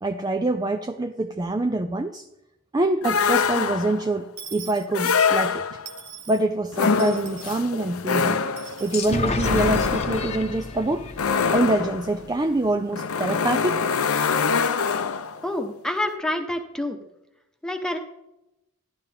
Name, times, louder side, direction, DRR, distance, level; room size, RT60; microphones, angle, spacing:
voice 1, 0.0-2.3 2.7-5.6 6.3-8.5 8.8-11.1 11.5-13.9, right 2 dB, 20° right, 0.5 m, -25 dB
sound 1, 3.0-4.1 4.9-6.0 6.7-15.4, left 5 dB, 70° left, 0.7 m, -25 dB
Dishes pots and pans / Coin (dropping), 4.4-5.5 5.9-6.4 7.0-7.7 8.6-9.1, right 9 dB, 85° right, 1.3 m, -42 dB
sound 2, 8.9-12.6, left 3 dB, 30° left, 0.9 m, -31 dB
voice 2, 15.4-17.0 17.6-18.0, left 1 dB, 5° left, 1.1 m, -27 dB
14.0 x 11.5 x 3.5 m
head